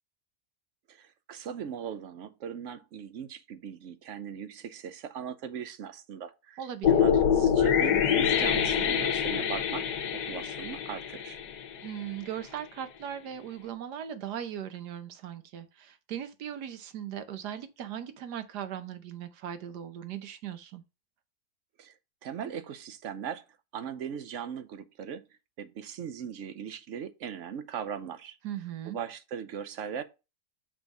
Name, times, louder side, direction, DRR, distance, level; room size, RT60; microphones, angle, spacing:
voice 1, 0.9-9.9 10.1-11.4 21.8-21.9 22.2-23.4 23.7-25.2 25.6-28.4 28.8-30.0, right 8 dB, 60° right, 0.9 m, -39 dB
voice 2, 6.6-7.1 11.8-20.8 28.4-29.0, right 10 dB, 85° right, 1.4 m, -38 dB
sound 1, 6.8-12.0, left 8 dB, 90° left, 1.4 m, -26 dB
6.1 x 3.6 x 5.3 m
omnidirectional pair, 1.7 m